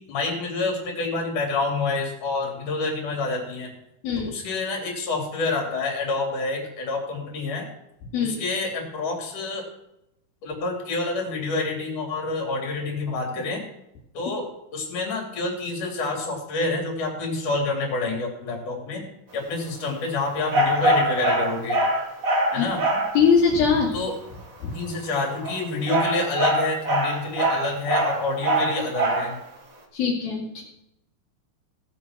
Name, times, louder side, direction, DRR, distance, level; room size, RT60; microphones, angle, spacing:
voice 1, 0.1-3.7 4.2-7.6 8.2-9.6 10.4-13.6 14.1-14.4 14.7-19.0 19.3-21.9 22.5-22.8 23.9-24.1 24.7-29.4, left 3 dB, 55° left, 1 dB, 4.6 m, -28 dB
sound 1, 20.5-23.2 25.3-29.3, right 1 dB, 85° right, 0.7 m, -23 dB
voice 2, 23.1-24.0 24.6-24.7 29.9-30.6, left 6 dB, 75° left, -4 dB, 3.9 m, -21 dB
17.5 x 7.8 x 6.1 m, 0.84 s
omnidirectional pair, 4.3 m